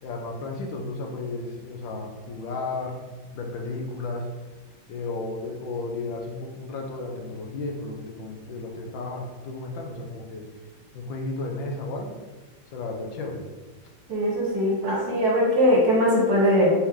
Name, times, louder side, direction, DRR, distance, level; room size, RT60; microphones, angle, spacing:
voice 1, 0.0-3.0 3.3-4.3 4.9-10.5 10.9-12.2 12.7-13.4, left 3 dB, 75° left, 1 dB, 1.3 m, -33 dB
voice 2, 14.1-16.7, equal, 55° right, -3 dB, 1.3 m, -21 dB
4.4 x 3.4 x 3.5 m, 1.3 s
omnidirectional pair, 2.3 m